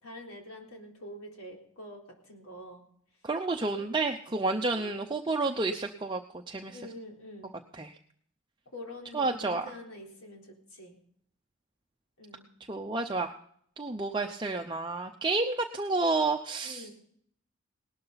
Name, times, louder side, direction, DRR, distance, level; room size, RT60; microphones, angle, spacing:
voice 1, 0.0-2.8 3.8-3.9 4.7-4.9 6.7-7.6 8.7-11.0 12.2-12.5 16.6-16.9, left 1 dB, 85° left, 0 dB, 3.9 m, -46 dB
voice 2, 3.2-6.8 7.7-7.9 9.1-9.6 12.7-13.3 13.8-16.8, right 3 dB, 20° right, 3 dB, 0.6 m, -30 dB
18.5 x 12.5 x 4.1 m, 0.63 s
head